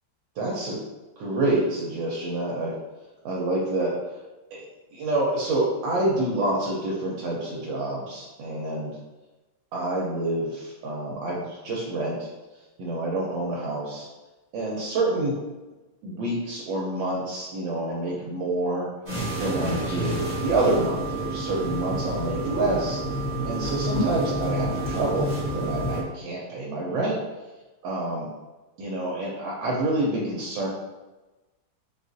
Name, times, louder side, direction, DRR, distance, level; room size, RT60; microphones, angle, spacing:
voice 1, 0.4-0.8 1.2-2.8 3.2-4.0 4.5-4.6 4.9-9.0 9.7-12.3 12.8-14.1 14.5-15.4 16.0-18.9 19.4-23.0 23.4-27.2 27.8-28.2 28.8-30.7, right 2 dB, 85° right, -4 dB, 1.3 m, -27 dB
sound 1, 19.1-26.0, right 1 dB, 40° right, 0.9 m, -29 dB
3.9 x 2.4 x 2.5 m, 1.1 s
omnidirectional pair, 2.0 m